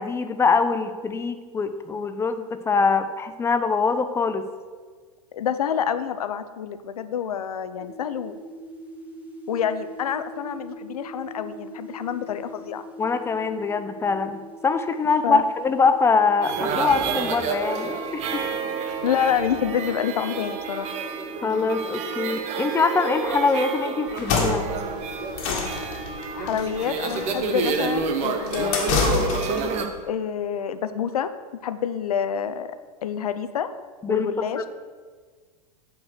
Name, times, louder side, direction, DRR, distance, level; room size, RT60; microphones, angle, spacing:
voice 1, 0.0-4.5 13.0-18.3 21.4-24.7 34.0-34.3 34.5-34.7, left 4 dB, 15° left, 9 dB, 0.6 m, -23 dB
voice 2, 5.3-8.4 9.5-12.8 15.2-15.4 19.0-20.9 26.4-29.0 30.1-32.7 33.0-33.7 34.1-34.7, left 8 dB, 70° left, 11 dB, 0.6 m, -27 dB
sound 1, 7.8-26.8, right 2 dB, 5° right, 1.3 m, -41 dB
sound 2, 16.4-29.9, right 5 dB, 35° right, 1.0 m, -29 dB
sound 3, 24.1-29.7, left 5 dB, 50° left, 1.8 m, -28 dB
8.3 x 4.6 x 6.6 m, 1.5 s
hypercardioid pair, 100°, 20 cm